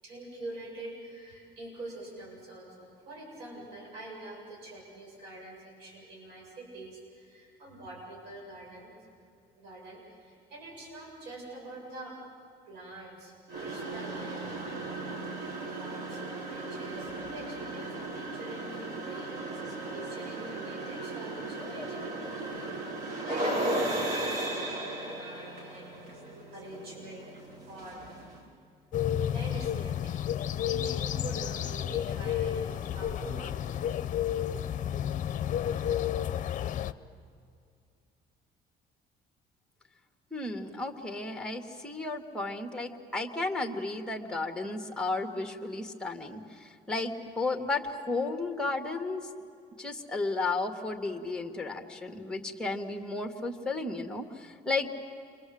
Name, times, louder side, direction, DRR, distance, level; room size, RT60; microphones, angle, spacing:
voice 1, 0.0-8.9 9.6-12.1 12.7-14.6 15.4-22.2 22.6-28.1 29.3-30.2 30.6-33.6, right 2 dB, 90° right, -1 dB, 7.6 m, -45 dB
sound 1, 13.5-28.4, right 2 dB, 60° right, 5.3 m, -36 dB
sound 2, 28.9-36.9, left 10 dB, 50° left, 0.8 m, -31 dB
voice 2, 40.3-49.3 49.8-54.9, left 3 dB, 5° left, 4 dB, 2.2 m, -33 dB
29.0 x 23.5 x 8.0 m, 2.4 s
cardioid pair, 110°, 17 cm